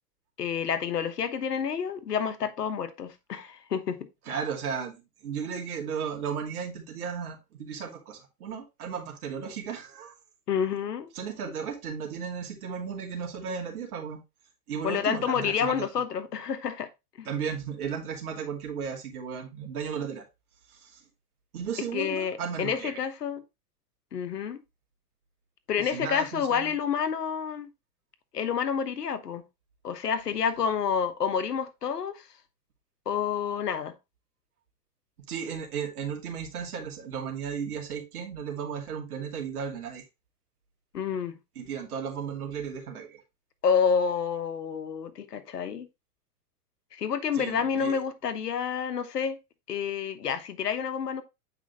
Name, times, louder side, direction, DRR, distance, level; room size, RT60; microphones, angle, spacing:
voice 1, 0.4-4.0 10.5-11.1 14.8-16.9 17.2-17.3 21.9-23.4 24.1-24.6 25.7-27.7 28.3-29.4 29.8-32.3 33.1-33.9 40.9-41.3 43.6-45.9 46.9-49.4 49.7-51.2, left 7 dB, 85° left, 1.2 m, -29 dB
voice 2, 4.3-10.1 11.1-14.2 14.7-15.9 17.2-20.2 20.7-21.0 21.5-22.9 25.8-26.7 35.3-40.0 41.6-43.2 47.3-48.0, right 7 dB, 70° right, 2.5 m, -35 dB
8.5 x 4.9 x 3.0 m
hypercardioid pair, 95°, 46 cm